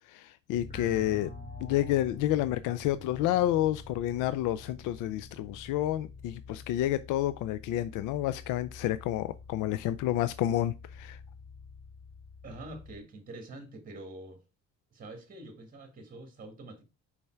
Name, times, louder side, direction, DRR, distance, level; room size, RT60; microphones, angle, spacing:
voice 1, 0.1-1.3 1.6-11.2, left 13 dB, 75° left, 0.5 m, -29 dB
sound 1, 0.5-13.0, left 3 dB, 25° left, 1.5 m, -47 dB
voice 2, 12.4-14.4 14.9-16.8, right 2 dB, 25° right, 1.8 m, -45 dB
5.5 x 4.8 x 4.5 m
cardioid pair, 135°, 31 cm